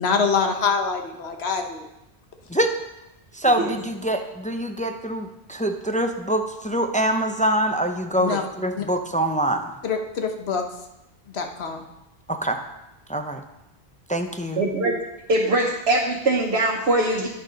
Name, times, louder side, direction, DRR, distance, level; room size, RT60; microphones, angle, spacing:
voice 1, 0.0-1.8 8.2-8.4 8.7-8.9 9.8-10.6 11.3-11.8, left 5 dB, 80° left, 5 dB, 1.2 m, -25 dB
voice 2, 3.3-9.7 12.3-12.6 13.1-13.4 14.1-14.6, right 1 dB, 10° left, 5 dB, 0.4 m, -24 dB
voice 3, 14.6-15.0 15.3-17.3, right 2 dB, 80° right, -3 dB, 1.3 m, -22 dB
9.6 x 6.6 x 5.0 m, 0.92 s
omnidirectional pair, 1.1 m